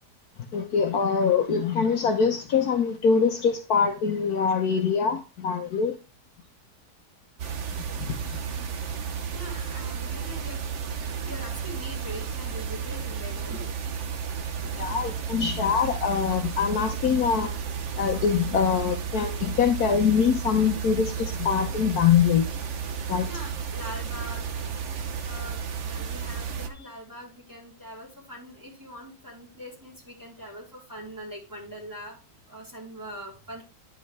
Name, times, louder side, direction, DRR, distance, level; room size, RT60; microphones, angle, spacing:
voice 1, 0.5-5.9 8.0-8.4 14.8-17.5 18.0-22.4 23.1-23.3, left 6 dB, 65° left, 5 dB, 1.4 m, -24 dB
sound 1, 7.4-26.7, right 7 dB, 50° right, 1.1 m, -33 dB
voice 2, 8.3-8.7 9.2-10.6 11.0-13.7 23.0-24.5 25.2-32.2 32.5-33.6, equal, 10° right, -3 dB, 3.7 m, -42 dB
10.0 x 5.4 x 3.3 m, 0.30 s
omnidirectional pair, 1.8 m